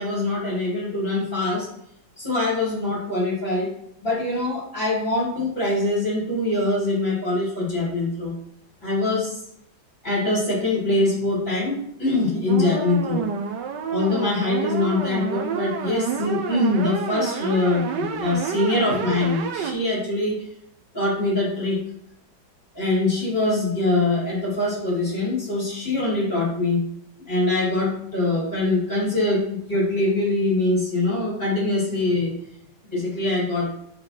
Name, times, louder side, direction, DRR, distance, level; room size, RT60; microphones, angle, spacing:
voice 1, 0.0-1.7 2.2-3.7 4.0-8.3 8.8-9.3 10.0-13.3 13.9-20.4 20.9-21.8 22.7-26.8 27.2-32.3 32.9-33.7, left 2 dB, 20° left, -8 dB, 2.9 m, -23 dB
sound 1, 12.5-19.7, right 7 dB, 65° right, 1.2 m, -29 dB
5.1 x 4.5 x 5.8 m, 0.74 s
omnidirectional pair, 2.2 m